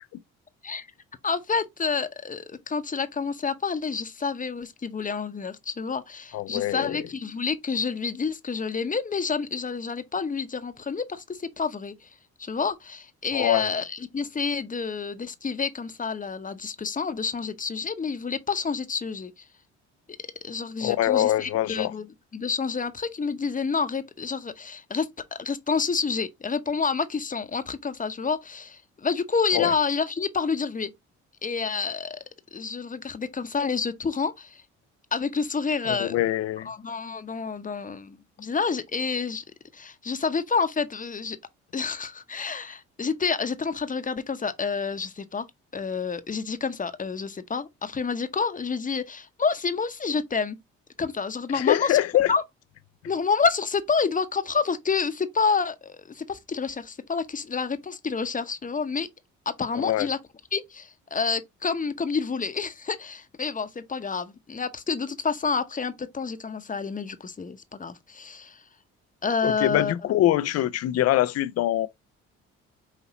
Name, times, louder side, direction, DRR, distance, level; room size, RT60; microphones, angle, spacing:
voice 1, 1.2-12.1 12.4-19.5 20.4-22.1 22.3-30.9 31.4-32.2 32.5-34.6 35.1-36.2 36.6-39.4 39.7-41.4 41.7-45.5 45.7-50.6 51.0-52.0 52.3-52.4 53.0-59.1 59.5-60.2 60.5-68.6 69.2-69.9, left 5 dB, 25° left, 0.8 m, -28 dB
voice 2, 6.3-7.0 13.3-13.7 20.8-21.9 29.5-29.7 35.9-36.7 51.5-52.3 59.8-60.1 69.4-71.9, left 13 dB, 55° left, 0.5 m, -24 dB
5.7 x 2.8 x 2.9 m
supercardioid pair, 65°, 30 cm